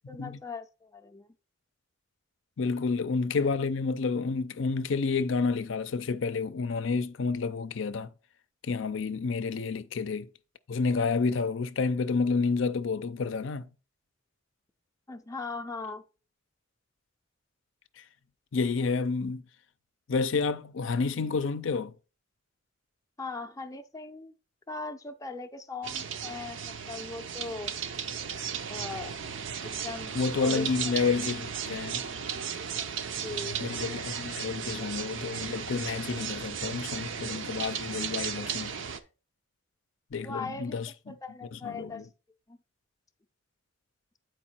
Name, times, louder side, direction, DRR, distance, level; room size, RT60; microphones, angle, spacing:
voice 1, 0.1-1.3 2.8-2.9 15.1-16.0 23.2-24.3 24.7-27.7 28.7-29.2 29.6-30.1 30.4-30.7 33.2-33.6 40.2-40.8 41.1-42.1 42.5-42.6, left 3 dB, 15° left, 0.5 m, -39 dB
voice 2, 2.6-8.1 8.6-10.3 10.7-13.7 18.0-18.1 18.5-19.4 20.1-21.9 30.1-32.1 33.6-38.7 40.1-41.2 41.6-42.0, left 4 dB, 70° left, 0.5 m, -29 dB
sound 1, 25.8-39.0, right 7 dB, 70° right, 0.6 m, -35 dB
8.5 x 4.6 x 4.4 m
head